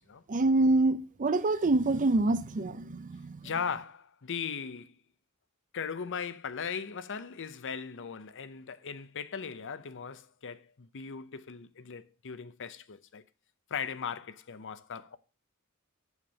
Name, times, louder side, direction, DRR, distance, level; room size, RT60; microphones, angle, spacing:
voice 1, 0.3-3.5, right 2 dB, 35° right, 0.6 m, -26 dB
voice 2, 3.4-4.9 5.7-13.2 13.7-15.2, left 6 dB, 60° left, 0.7 m, -38 dB
8.1 x 7.3 x 6.3 m
head